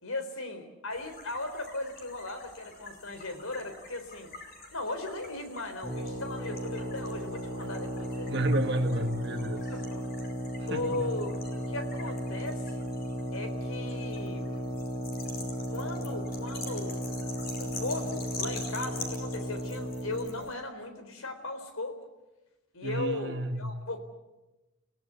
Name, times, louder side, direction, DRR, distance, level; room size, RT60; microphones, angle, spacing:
voice 1, 0.0-4.3 4.7-8.5 9.7-10.1 10.7-11.4 11.7-12.9 13.3-14.6 15.7-17.0 17.6-22.0 22.7-24.0, left 2 dB, 75° left, 4.0 m, -37 dB
sound 1, 0.9-20.5, left 3 dB, 45° left, 5.3 m, -46 dB
sound 2, 5.8-20.3, equal, 20° left, 4.7 m, -35 dB
voice 2, 8.3-9.7 10.6-11.1 22.8-23.9, right 1 dB, 50° right, 1.5 m, -31 dB
29.5 x 17.5 x 8.3 m
head